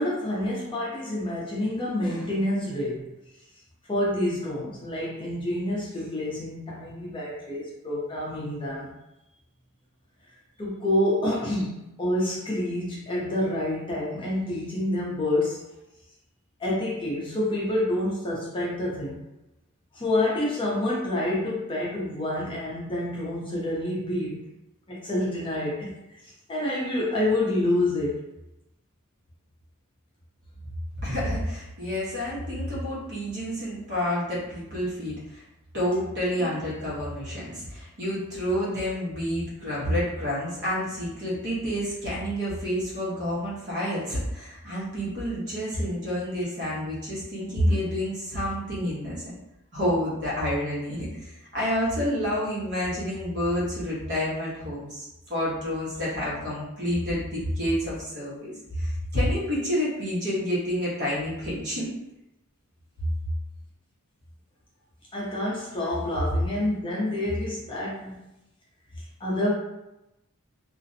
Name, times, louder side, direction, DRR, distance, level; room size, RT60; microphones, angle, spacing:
voice 1, 0.0-3.1 3.9-8.9 10.6-15.6 16.6-19.2 19.9-24.4 24.9-28.2 36.4-36.6 47.7-47.8 65.1-68.2 69.0-69.5, left 1 dB, 25° left, -6 dB, 0.5 m, -28 dB
voice 2, 31.0-35.4 35.7-49.2 49.7-58.5 58.8-61.9, equal, 50° right, -6 dB, 0.9 m, -29 dB
2.4 x 2.0 x 2.6 m, 0.92 s
head